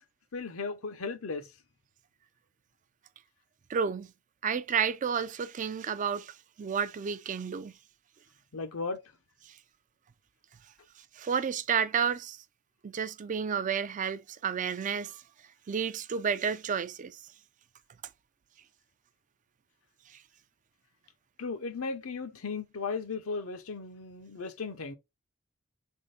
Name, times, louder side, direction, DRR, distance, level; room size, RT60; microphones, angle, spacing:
voice 1, 0.3-1.4 8.5-9.0 21.4-24.9, left 4 dB, 75° left, 0.7 m, -36 dB
voice 2, 3.7-4.1 4.4-7.7 11.2-12.4 12.8-15.2 15.7-17.2, right 7 dB, 35° right, 0.4 m, -31 dB
3.7 x 3.6 x 4.0 m
head